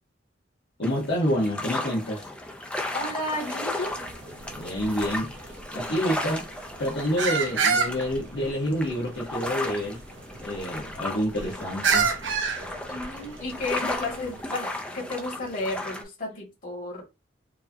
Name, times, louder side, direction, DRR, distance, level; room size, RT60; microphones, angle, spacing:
voice 1, 0.8-2.3 4.6-5.3 5.7-6.5 6.8-10.0 10.4-12.1, equal, 65° left, 1.1 m, -28 dB
sound 1, 0.8-16.0, left 1 dB, 5° left, 0.5 m, -35 dB
voice 2, 2.9-3.9 12.9-17.0, left 2 dB, 40° left, 2.1 m, -32 dB
sound 2, 3.8-14.4, right 5 dB, 70° right, 0.7 m, -31 dB
4.6 x 2.7 x 2.7 m
head